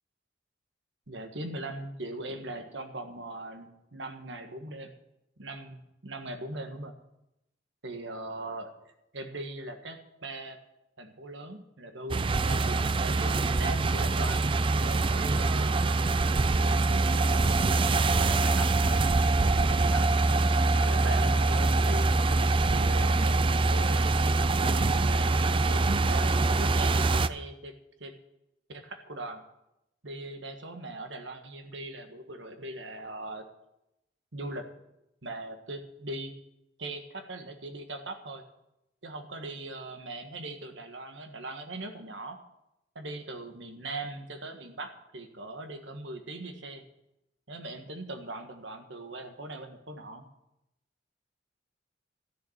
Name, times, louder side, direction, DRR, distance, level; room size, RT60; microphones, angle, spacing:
voice 1, 1.1-4.9 5.4-6.9 7.8-10.6 11.0-14.5 14.8-15.7 16.6-20.0 20.7-22.1 22.7-27.7 28.0-28.1 28.7-29.4 30.0-33.4 34.3-34.6 35.2-36.3 36.8-38.4 39.0-42.4 42.9-46.8 47.5-50.2, right 2 dB, 75° right, 6 dB, 1.6 m, -40 dB
sound 1, 12.1-27.3, right 3 dB, 30° right, 0.4 m, -24 dB
13.0 x 6.7 x 8.8 m, 0.87 s
head